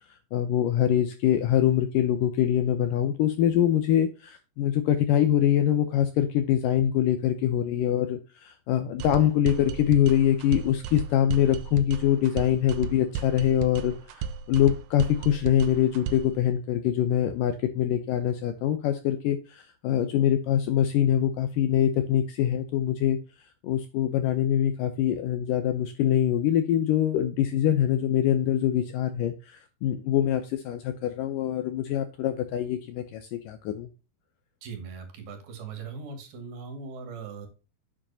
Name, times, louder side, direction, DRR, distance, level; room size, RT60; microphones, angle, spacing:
voice 1, 0.3-23.2 23.6-33.9, left 10 dB, 75° left, 9 dB, 2.0 m, -24 dB
sound 1, 9.0-16.4, right 7 dB, 90° right, 1.7 m, -35 dB
voice 2, 34.6-37.5, right 5 dB, 65° right, 5 dB, 4.0 m, -39 dB
9.7 x 7.6 x 2.8 m, 0.31 s
omnidirectional pair, 4.6 m